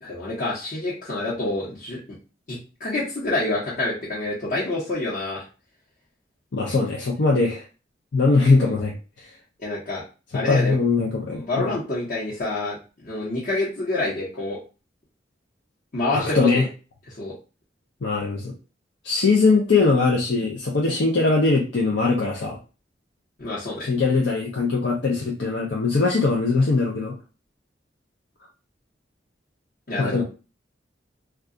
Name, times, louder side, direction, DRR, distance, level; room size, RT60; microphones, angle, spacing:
voice 1, 0.0-2.0 2.5-5.4 9.6-10.0 10.3-10.7 11.3-12.8 13.0-14.6 15.9-16.6 17.1-17.3 23.4-23.9 29.9-30.2, left 2 dB, 50° left, -8 dB, 1.0 m, -27 dB
voice 2, 6.5-7.6 8.1-8.9 10.5-11.7 16.1-16.6 18.0-18.5 19.0-22.6 23.8-27.1 30.0-30.2, left 3 dB, 70° left, -2 dB, 0.6 m, -21 dB
2.4 x 2.4 x 3.7 m, 0.33 s
head